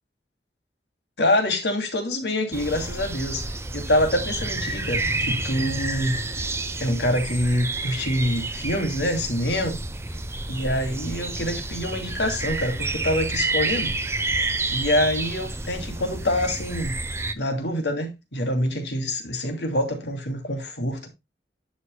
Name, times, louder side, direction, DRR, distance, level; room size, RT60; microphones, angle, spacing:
voice 1, 1.2-3.4 3.7-6.2 6.8-9.8 10.5-13.9 14.7-17.0 17.3-21.1, left 1 dB, 75° left, 2.8 m, -25 dB
sound 1, 2.5-17.3, right 2 dB, 15° right, 0.8 m, -29 dB
11.5 x 6.8 x 2.3 m
head